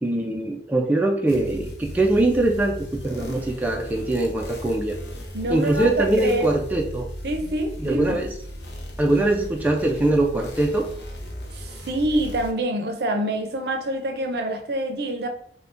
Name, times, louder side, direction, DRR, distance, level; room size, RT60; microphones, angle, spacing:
voice 1, 0.0-5.0 5.5-7.1 7.8-8.3 9.0-10.9, right 2 dB, 10° right, 0.3 m, -22 dB
sound 1, 1.3-12.5, equal, 70° left, 0.7 m, -36 dB
voice 2, 5.3-6.5 7.2-8.2 11.5-15.3, right 1 dB, 65° right, 0.5 m, -26 dB
4.6 x 2.2 x 2.5 m
head